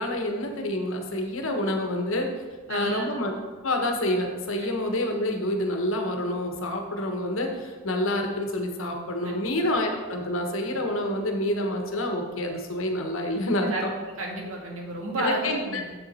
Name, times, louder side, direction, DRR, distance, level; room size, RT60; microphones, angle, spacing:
voice 1, 0.0-2.3 2.7-3.3 3.6-13.9 15.2-15.6, left 1 dB, 70° left, 3 dB, 1.2 m, -28 dB
voice 2, 2.7-3.1 9.2-9.5 13.5-13.9 14.2-15.8, right 1 dB, 80° right, -1 dB, 1.7 m, -31 dB
7.3 x 7.0 x 4.3 m, 1.3 s
head